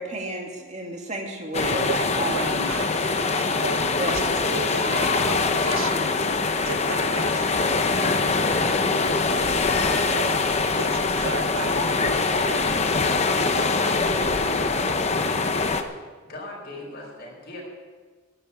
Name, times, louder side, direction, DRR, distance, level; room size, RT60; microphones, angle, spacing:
voice 1, 0.0-2.8 4.0-4.2 4.8-5.0, right 1 dB, 35° right, 1 dB, 2.2 m, -32 dB
sound 1, 1.5-15.8, left 3 dB, 30° left, 0.8 m, -23 dB
voice 2, 1.8-3.8 4.1-6.3 6.6-7.6 10.1-10.4 10.8-12.7, right 4 dB, 65° right, 11 dB, 0.8 m, -35 dB
sound 2, 9.5-10.7 11.3-11.6 12.3-12.4 12.7-12.9 13.9-14.3, left 3 dB, 85° left, 3.5 m, -39 dB
voice 3, 13.5-15.1 16.2-17.6, left 2 dB, 50° left, -2 dB, 4.9 m, -39 dB
11.0 x 10.5 x 8.2 m, 1.4 s
head